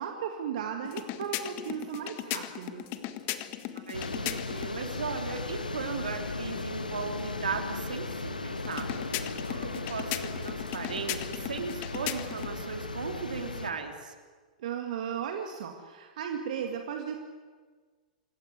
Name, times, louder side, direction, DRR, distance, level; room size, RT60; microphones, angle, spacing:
voice 1, 0.0-2.8 14.6-17.2, right 8 dB, 60° right, 4 dB, 2.0 m, -35 dB
sound 1, 0.8-4.7 8.6-12.5, left 13 dB, 40° left, 1.6 m, -37 dB
sound 2, 3.9-13.7, left 3 dB, 90° left, 1.4 m, -37 dB
voice 2, 3.9-14.1, right 5 dB, 80° right, 5 dB, 3.2 m, -37 dB
26.5 x 15.5 x 9.7 m, 1.5 s
figure-of-eight pair, 105°, 4 cm